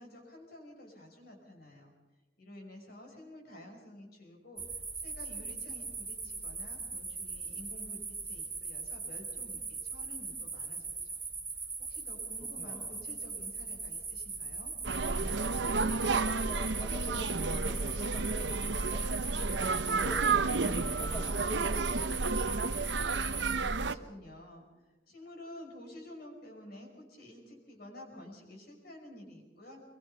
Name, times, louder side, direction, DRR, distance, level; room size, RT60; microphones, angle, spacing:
voice 1, 0.0-1.9 2.4-11.2 11.8-14.7 23.4-29.8, left 1 dB, 60° left, 2 dB, 5.7 m, -51 dB
sound 1, 4.6-23.6, right 4 dB, 15° right, 2.8 m, -40 dB
voice 2, 12.6-13.0 16.1-19.0 19.7-22.4, right 1 dB, 20° left, -4 dB, 4.4 m, -46 dB
sound 2, 14.8-23.9, right 4 dB, 75° right, 0.8 m, -31 dB
23.0 x 22.5 x 5.6 m, 1.1 s
head